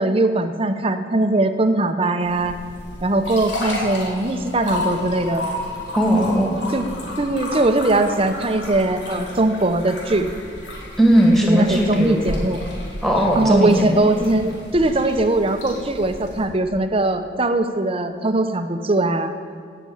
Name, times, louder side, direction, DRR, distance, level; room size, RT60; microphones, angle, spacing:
voice 1, 0.0-2.5 3.0-5.4 6.7-6.8 7.2-10.3 11.4-12.6 13.4-19.3, right 2 dB, 30° right, 8 dB, 0.7 m, -20 dB
sound 1, 2.2-16.4, left 1 dB, 80° left, 3.3 m, -32 dB
voice 2, 5.9-6.6 11.0-12.2 13.0-14.0, equal, ahead, 0 dB, 2.0 m, -17 dB
16.5 x 6.9 x 8.6 m, 2.1 s
head